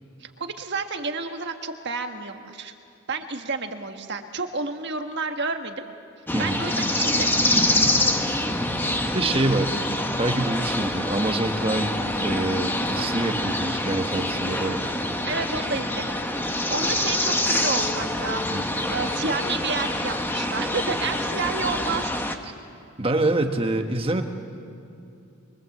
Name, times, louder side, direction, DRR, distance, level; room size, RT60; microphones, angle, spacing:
voice 1, 0.2-2.7 3.1-5.9 6.4-7.4 15.3-16.2 16.5-22.1, right 4 dB, 55° right, 6 dB, 1.5 m, -30 dB
sound 1, 6.3-22.3, left 1 dB, 10° left, 1.1 m, -26 dB
voice 2, 9.1-14.8 18.5-18.6 23.0-24.2, right 2 dB, 25° right, 5 dB, 1.4 m, -26 dB
24.0 x 23.5 x 7.9 m, 2.6 s
head